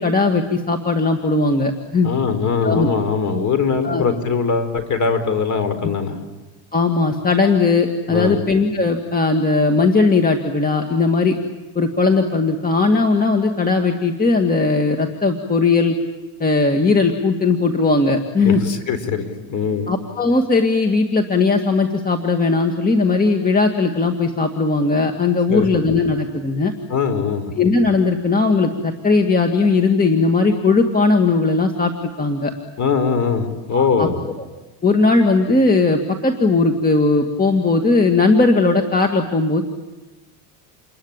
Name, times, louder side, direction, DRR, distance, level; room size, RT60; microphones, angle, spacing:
voice 1, 0.0-2.1 2.6-2.9 3.8-4.0 6.7-11.4 11.8-16.0 16.4-18.6 19.9-26.7 27.6-32.5 33.7-34.1 34.8-39.6, left 3 dB, 20° left, 4 dB, 2.1 m, -18 dB
voice 2, 2.0-6.2 8.1-8.4 18.4-19.9 25.5-25.7 26.9-27.5 32.8-34.2, left 5 dB, 40° left, 10 dB, 4.5 m, -21 dB
29.0 x 22.0 x 8.9 m, 1.1 s
cardioid pair, 115°, 46 cm